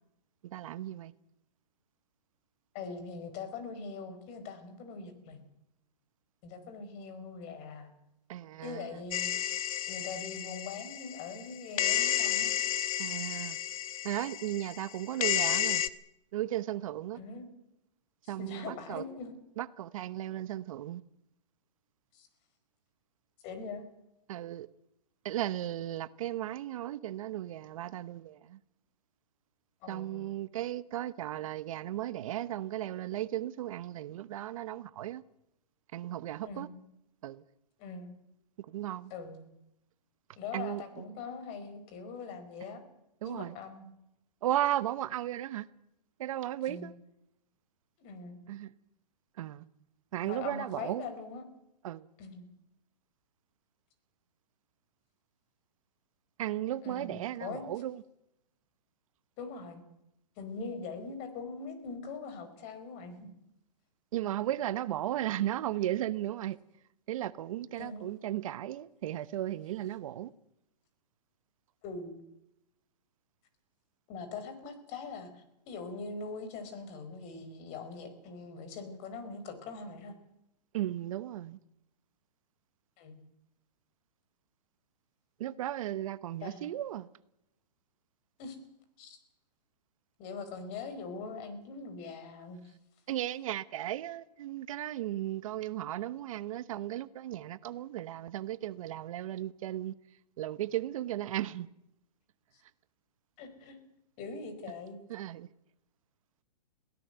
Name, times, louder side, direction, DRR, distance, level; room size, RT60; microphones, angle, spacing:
voice 1, 0.5-1.1 8.3-8.9 13.0-13.6 14.0-15.8 16.3-17.2 18.3-19.0 19.6-21.0 24.3-24.7 25.2-28.6 29.9-35.2 35.9-36.7 37.2-37.4 38.7-39.1 40.5-40.8 43.2-43.5 44.4-45.7 46.2-46.9 48.5-48.7 49.4-49.6 50.1-51.1 51.8-52.1 56.4-58.0 64.1-66.6 67.1-70.3 80.7-81.6 85.4-87.1 93.1-99.9 100.4-101.7 105.1-105.5, right 13 dB, 55° right, 0.9 m, -35 dB
voice 2, 2.7-5.4 6.4-7.9 8.6-9.4 9.9-12.5 17.1-17.5 18.2-19.3 22.1-22.3 23.4-23.8 29.8-30.3 36.4-36.8 37.8-38.1 39.1-39.4 40.4-42.8 43.2-43.9 46.7-46.9 48.0-48.4 50.2-51.4 52.2-52.4 56.8-57.7 59.4-59.8 60.4-63.3 67.7-68.1 71.8-72.2 74.1-80.1 83.0-83.2 86.4-86.8 88.4-88.6 89.0-89.2 90.2-92.7 103.4-103.8 104.2-105.0, left 4 dB, 35° left, 4.7 m, -42 dB
sound 1, 9.1-11.5 11.8-15.9, left 11 dB, 55° left, 1.3 m, -32 dB
22.5 x 17.0 x 8.0 m
hypercardioid pair, 145°, 21 cm